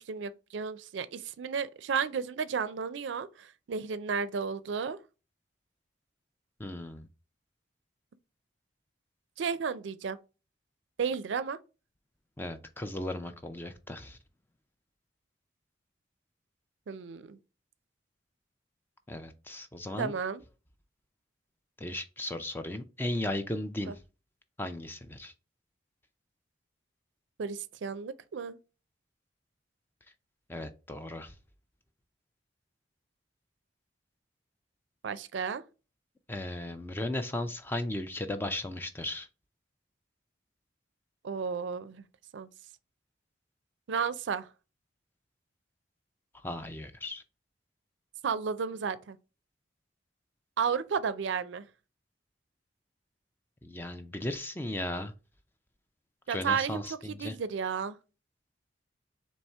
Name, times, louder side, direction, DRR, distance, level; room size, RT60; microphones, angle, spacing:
voice 1, 0.1-5.0 9.4-10.2 11.0-11.6 16.9-17.4 20.0-20.4 23.9-24.0 27.4-28.6 35.0-35.6 41.2-42.0 42.3-42.5 43.9-44.5 48.2-49.2 50.6-51.7 56.3-56.8 57.1-58.0, right 6 dB, 75° right, 0.4 m, -33 dB
voice 2, 6.6-7.1 12.4-14.2 19.1-20.1 21.8-24.0 24.6-25.3 30.5-31.3 36.3-39.3 46.4-47.2 53.6-55.1 56.3-57.4, left 1 dB, 10° left, 0.4 m, -36 dB
4.2 x 3.1 x 3.4 m
head